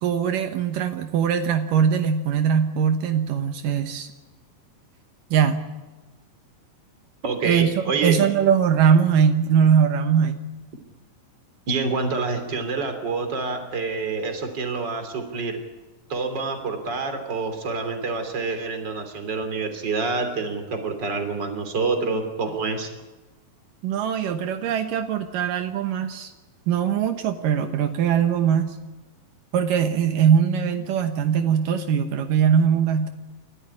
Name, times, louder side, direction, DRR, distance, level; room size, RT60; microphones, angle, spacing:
voice 1, 0.0-4.1 5.3-5.6 7.4-10.4 23.8-26.3 26.7-28.8 29.5-33.1, right 7 dB, 80° right, 7 dB, 2.7 m, -21 dB
voice 2, 7.2-8.3 11.7-15.6 16.1-22.9, right 4 dB, 30° right, 6 dB, 3.5 m, -27 dB
29.5 x 14.0 x 9.9 m, 1.2 s
omnidirectional pair, 3.9 m